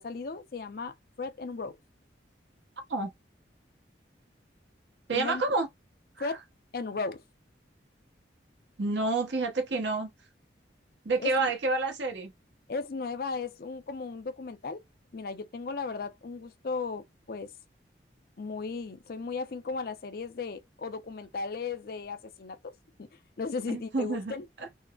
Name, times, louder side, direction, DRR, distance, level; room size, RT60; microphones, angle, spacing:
voice 1, 0.0-1.8 5.1-5.4 6.2-6.4 6.7-7.2 11.2-11.5 12.7-14.8 15.1-17.5 18.4-22.7 23.4-24.5, left 4 dB, 50° left, 0.4 m, -36 dB
voice 2, 5.1-5.7 6.2-6.4 8.8-10.1 11.0-12.3 23.7-24.7, right 3 dB, 75° right, 0.8 m, -29 dB
3.7 x 2.0 x 2.2 m
head